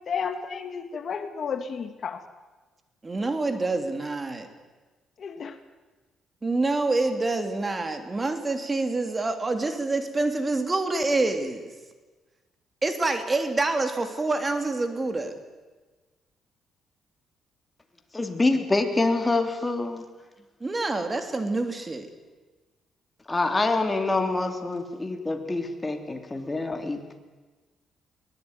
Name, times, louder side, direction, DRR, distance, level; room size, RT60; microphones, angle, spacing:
voice 1, 0.1-2.2 5.2-5.6, left 6 dB, 55° left, 8 dB, 2.0 m, -32 dB
voice 2, 3.0-4.5 6.4-11.7 12.8-15.3 20.6-22.1, right 2 dB, 25° right, 8 dB, 3.0 m, -26 dB
voice 3, 18.1-20.0 23.3-27.2, left 2 dB, 20° left, 6 dB, 3.2 m, -26 dB
22.5 x 19.5 x 9.6 m, 1.3 s
cardioid pair, 90°, 0 cm